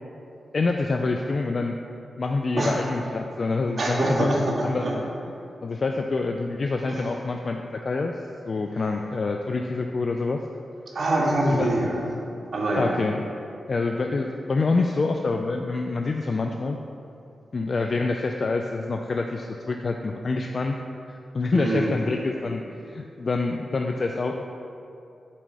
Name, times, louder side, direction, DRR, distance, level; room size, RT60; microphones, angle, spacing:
voice 1, 0.5-1.8 2.2-4.3 4.6-5.0 5.6-8.1 8.4-10.4 11.5-11.7 12.8-13.2 13.7-16.8 17.5-20.8 21.1-24.4, left 3 dB, 55° left, 3 dB, 0.4 m, -26 dB
voice 2, 3.8-4.9 6.9-7.1 8.8-8.9 10.9-12.1 12.5-13.0 21.5-22.1, right 1 dB, 55° right, -3 dB, 1.9 m, -25 dB
8.4 x 4.5 x 6.3 m, 2.7 s
cardioid pair, 55°, 0 cm